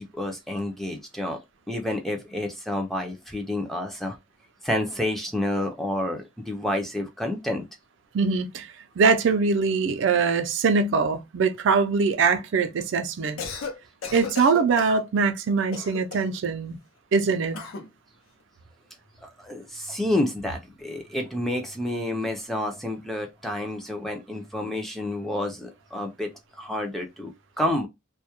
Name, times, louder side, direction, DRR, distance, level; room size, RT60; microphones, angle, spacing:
voice 1, 0.0-1.4 1.7-4.2 4.6-7.6 19.2-26.3 26.6-27.9, left 1 dB, ahead, 0.3 m, -29 dB
voice 2, 8.1-8.7 9.0-13.4 14.1-16.8 17.1-17.6, right 4 dB, 65° right, 0.4 m, -22 dB
Cough, 13.2-13.8 14.0-15.0 15.7-16.4 17.5-17.9, left 5 dB, 90° left, 0.6 m, -35 dB
2.2 x 2.0 x 2.8 m
head